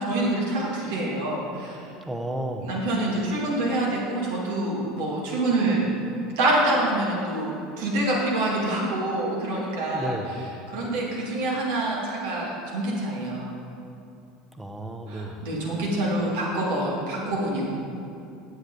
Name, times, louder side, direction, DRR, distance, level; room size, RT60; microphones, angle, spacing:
voice 1, 0.0-1.8 2.6-5.9 6.3-10.2 10.7-13.5 15.1-17.7, right 1 dB, 70° right, -4 dB, 2.3 m, -26 dB
voice 2, 2.1-2.8 9.9-10.4 14.5-15.4, right 1 dB, 10° right, 5 dB, 0.9 m, -32 dB
9.5 x 8.1 x 4.0 m, 2.5 s
hypercardioid pair, 75°, 0 cm